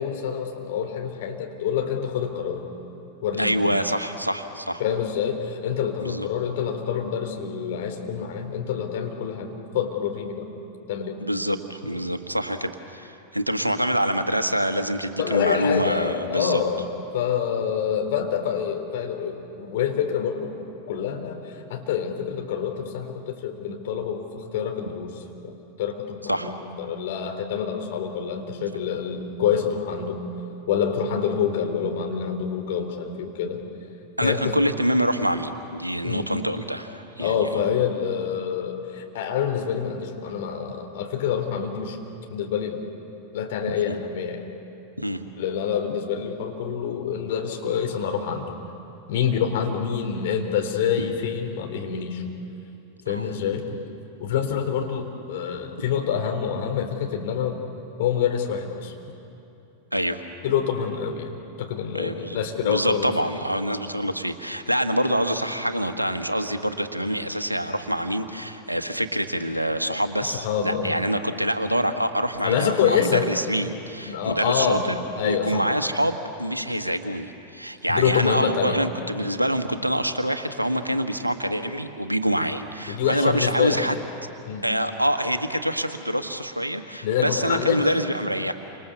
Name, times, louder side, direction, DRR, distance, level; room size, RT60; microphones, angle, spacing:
voice 1, 0.0-2.6 3.2-3.6 4.8-10.5 10.9-11.2 15.2-16.8 17.1-20.6 20.9-30.2 30.7-33.6 34.2-34.6 36.0-36.3 37.2-42.0 42.3-42.9 43.3-44.5 45.4-48.5 49.1-52.2 53.1-53.6 54.2-57.6 58.0-58.9 60.4-61.3 61.6-63.1 70.2-70.9 72.4-73.3 74.1-74.9 75.2-75.6 77.9-78.9 82.9-83.8 84.5-84.6 87.0-87.9, left 8 dB, 55° left, 3 dB, 3.8 m, -26 dB
voice 2, 3.4-4.8 6.0-6.3 11.2-16.6 26.3-26.5 34.2-37.7 43.9-44.0 45.0-45.2 51.0-51.1 53.0-53.3 59.9-60.2 61.9-74.8 75.2-83.9 84.6-88.5, equal, 85° right, 8 dB, 1.5 m, -26 dB
30.0 x 26.5 x 7.0 m, 2.8 s
figure-of-eight pair, 90°, 0 cm